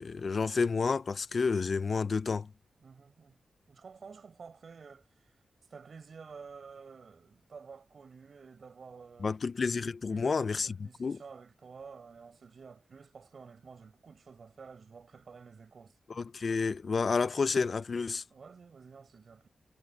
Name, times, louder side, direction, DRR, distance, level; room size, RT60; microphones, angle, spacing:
voice 1, 0.0-2.5 9.2-11.2 16.2-18.2, left 4 dB, 55° left, 0.8 m, -30 dB
voice 2, 2.8-3.4 3.7-5.4 5.7-9.4 10.1-16.0 18.3-19.5, right 5 dB, 65° right, 5.4 m, -51 dB
cardioid pair, 70°, 0 cm